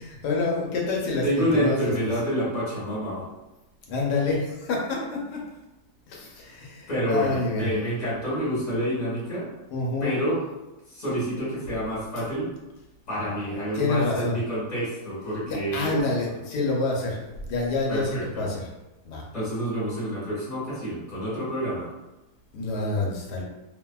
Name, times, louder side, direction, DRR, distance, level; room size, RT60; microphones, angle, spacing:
voice 1, 0.0-1.9 3.9-5.4 6.1-7.7 9.7-10.1 13.3-13.4 13.7-14.4 15.5-17.2 17.5-18.7 19.1-19.2 22.5-23.4, left 3 dB, 75° left, -2 dB, 1.2 m, -27 dB
voice 2, 1.2-3.3 6.9-9.5 10.0-10.4 10.9-12.5 13.1-16.1 17.9-18.4 19.3-21.9, equal, 25° left, -8 dB, 1.2 m, -28 dB
2.7 x 2.7 x 2.2 m, 1.0 s
omnidirectional pair, 1.9 m